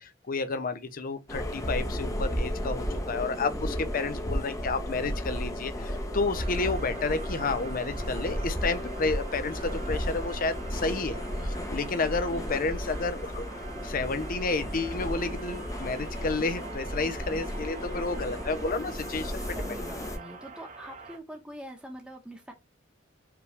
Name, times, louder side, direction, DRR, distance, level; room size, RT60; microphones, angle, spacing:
voice 1, 0.0-13.5 13.8-19.4, left 3 dB, 45° left, 0.6 m, -31 dB
sound 1, 1.3-20.2, equal, 15° left, 0.9 m, -34 dB
sound 2, 2.2-20.2, equal, 60° right, 1.2 m, -47 dB
sound 3, 6.3-21.2, right 4 dB, 40° right, 1.0 m, -45 dB
voice 2, 12.0-12.5 17.3-17.7 19.4-22.5, equal, 5° right, 1.1 m, -44 dB
5.0 x 3.1 x 3.2 m
head